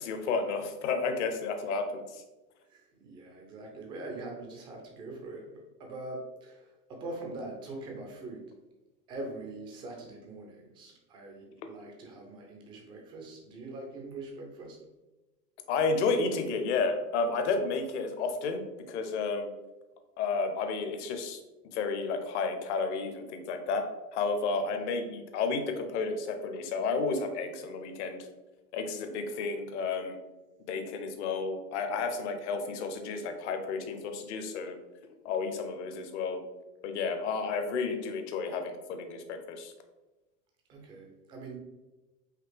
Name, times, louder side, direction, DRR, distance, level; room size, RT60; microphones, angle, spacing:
voice 1, 0.0-2.2 15.7-19.5 20.2-21.4 21.7-23.9 24.1-28.3 28.7-30.2 30.7-34.8 35.2-36.4 36.8-39.7, left 4 dB, 45° left, 6 dB, 0.7 m, -31 dB
voice 2, 2.7-8.5 9.1-14.8 24.6-24.8 40.7-41.6, right 2 dB, 10° right, 1 dB, 0.4 m, -43 dB
4.9 x 2.9 x 3.3 m, 1.1 s
figure-of-eight pair, 85°, 50 cm